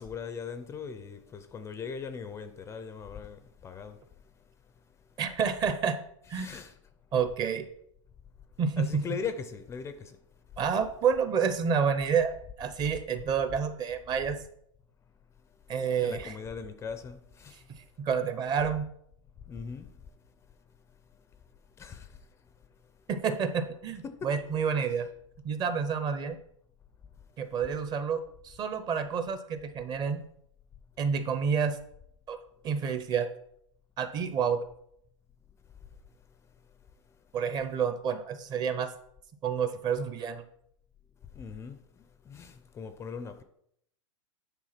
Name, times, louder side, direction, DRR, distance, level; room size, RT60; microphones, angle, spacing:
voice 1, 0.0-4.0 6.3-6.8 8.8-10.2 16.0-17.6 19.5-19.9 21.8-22.1 24.0-24.3 41.3-43.4, left 6 dB, 15° left, 0.5 m, -40 dB
voice 2, 5.2-6.0 6.3-6.5 7.1-7.6 8.6-9.0 10.6-12.3 12.6-14.4 15.7-16.3 18.0-18.9 23.1-25.1 25.4-26.4 27.4-30.2 31.0-31.8 32.3-32.4 32.6-33.3 34.0-34.6 37.3-38.9 39.4-40.4, right 6 dB, 25° right, 0.7 m, -29 dB
9.3 x 3.7 x 5.7 m
hypercardioid pair, 140°, 17 cm